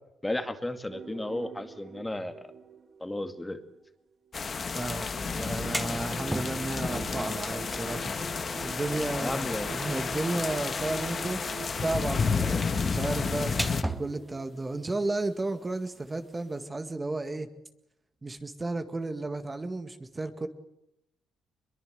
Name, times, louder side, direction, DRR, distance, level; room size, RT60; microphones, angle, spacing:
voice 1, 0.2-2.4 3.0-3.6 9.2-9.7 12.4-12.6, left 1 dB, 10° left, 8 dB, 2.2 m, -34 dB
sound 1, 0.9-4.5 5.1-15.7, right 5 dB, 40° right, 2.0 m, -45 dB
sound 2, 4.3-13.8, left 5 dB, 40° left, 1.6 m, -31 dB
voice 2, 4.8-8.1 8.6-11.4 11.8-17.5 18.2-20.5, right 2 dB, 20° right, 8 dB, 1.9 m, -33 dB
sound 3, 5.4-16.7, right 1 dB, 5° right, 1.7 m, -42 dB
22.5 x 22.5 x 8.0 m, 0.83 s
cardioid pair, 90°, 0 cm